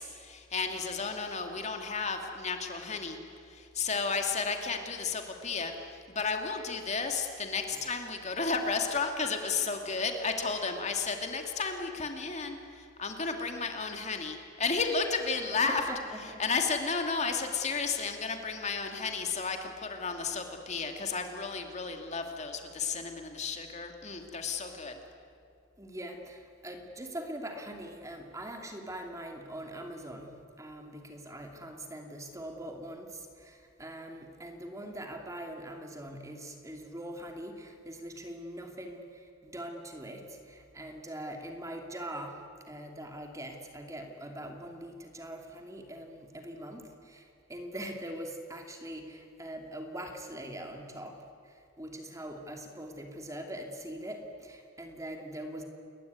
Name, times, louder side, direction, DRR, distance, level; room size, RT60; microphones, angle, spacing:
voice 1, 0.0-3.2 3.5-5.7 6.1-15.8 16.4-25.0, left 4 dB, 35° left, 4 dB, 2.5 m, -33 dB
voice 2, 15.5-16.4 25.8-55.6, right 1 dB, 15° right, 3 dB, 2.7 m, -42 dB
29.0 x 21.5 x 9.6 m, 2.5 s
head